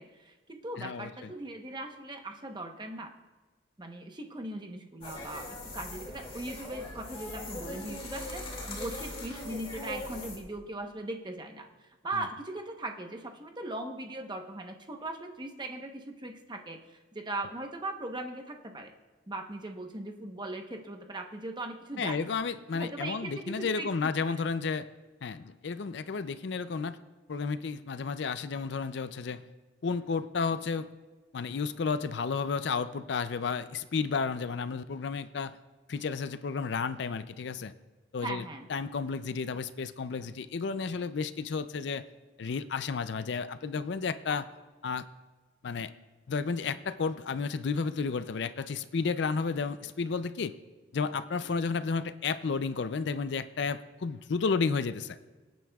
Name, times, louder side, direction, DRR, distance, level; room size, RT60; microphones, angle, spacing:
voice 1, 0.0-3.1 3.8-5.5 5.7-11.7 12.0-18.9 19.3-22.3 22.7-23.9 38.2-38.7 44.3-44.4, right 2 dB, 20° right, 4 dB, 0.9 m, -39 dB
voice 2, 0.8-1.3 22.0-24.9 25.2-27.0 27.3-29.4 29.8-30.9 31.3-35.6 35.9-37.7 38.1-38.4 38.7-42.0 42.4-44.5 44.8-45.1 45.6-45.9 46.3-50.5 50.9-55.2, left 5 dB, 60° left, 12 dB, 0.4 m, -32 dB
sound 1, 5.0-10.4, left 2 dB, 30° left, 2.1 m, -40 dB
24.5 x 9.4 x 2.3 m, 1.3 s
head